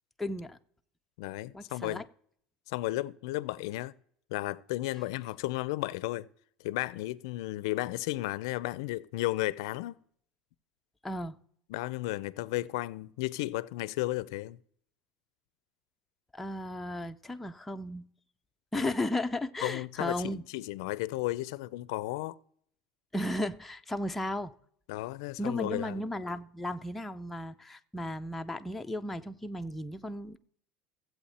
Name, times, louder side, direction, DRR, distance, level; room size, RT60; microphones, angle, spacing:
voice 1, 0.2-0.6 1.5-2.0 11.0-11.4 16.3-18.1 18.7-20.4 23.1-24.5 25.4-30.4, left 1 dB, 5° left, 0.5 m, -35 dB
voice 2, 1.2-2.0 2.7-3.9 4.3-6.3 6.6-10.0 11.7-14.6 18.8-18.9 19.6-22.3 24.9-26.0, left 18 dB, 80° left, 0.4 m, -34 dB
15.0 x 8.0 x 4.2 m
cardioid pair, 140°, 2 cm